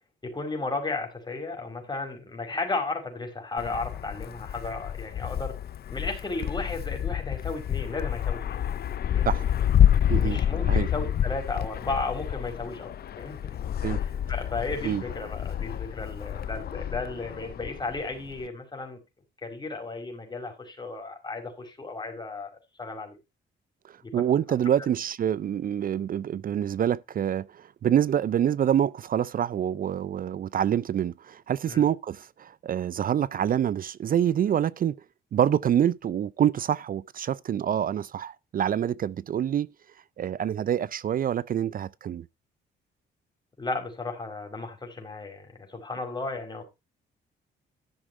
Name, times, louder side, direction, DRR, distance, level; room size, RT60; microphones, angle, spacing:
voice 1, 0.2-5.6 5.9-8.6 9.1-9.4 10.2-13.5 14.0-19.0 19.4-22.5 22.8-23.2 24.1-24.3 24.8-24.9 31.7-31.9 43.6-46.6, left 3 dB, 20° left, 5.0 m, -34 dB
Wind, 3.6-18.5, left 10 dB, 50° left, 0.6 m, -28 dB
voice 2, 10.1-10.4 10.7-10.9 13.8-14.0 14.8-15.0 24.1-34.9 35.3-39.7 40.2-42.2, right 10 dB, 45° right, 0.4 m, -26 dB
12.5 x 6.3 x 4.5 m
cardioid pair, 90°, 20 cm